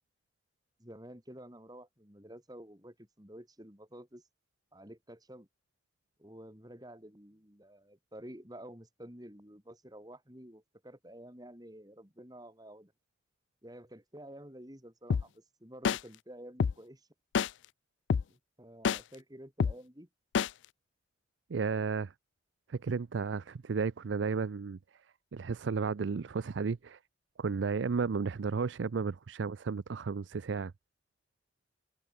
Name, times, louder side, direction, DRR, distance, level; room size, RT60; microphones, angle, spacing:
voice 1, 0.8-4.2 4.7-5.5 6.2-12.9 13.6-17.1 18.3-20.1, right 1 dB, 20° right, 4.1 m, -50 dB
sound 1, 15.1-15.2 15.9-16.0 16.6-16.7 17.4-17.5 18.1-18.2 18.9-19.0 19.6-19.7 20.4-20.5, left 6 dB, 80° left, 0.4 m, -26 dB
voice 2, 21.5-22.1 22.7-27.0 27.4-30.7, right 5 dB, 80° right, 0.5 m, -33 dB
head